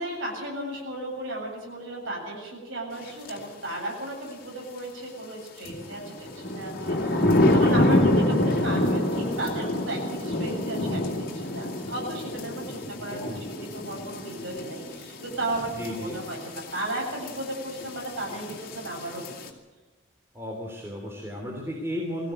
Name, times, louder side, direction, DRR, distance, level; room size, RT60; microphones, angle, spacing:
voice 1, 0.0-19.3, right 1 dB, 85° right, -2 dB, 7.8 m, -35 dB
Thunder and Rain, 3.3-3.4 5.7-19.5, left 1 dB, 50° left, 2.9 m, -27 dB
voice 2, 13.1-13.4 15.8-16.2 20.3-22.3, left 1 dB, 15° right, -1 dB, 3.2 m, -34 dB
21.0 x 15.5 x 8.0 m, 1.2 s
head